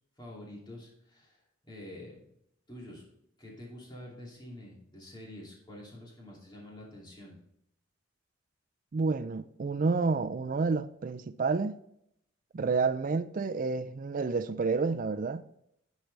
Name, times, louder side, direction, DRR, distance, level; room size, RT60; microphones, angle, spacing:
voice 1, 0.2-2.1 2.7-3.0 3.4-7.4, left 1 dB, 20° left, 2.6 m, -47 dB
voice 2, 8.9-11.8 12.5-15.4, right 4 dB, 40° right, 0.4 m, -29 dB
10.5 x 6.5 x 3.3 m
head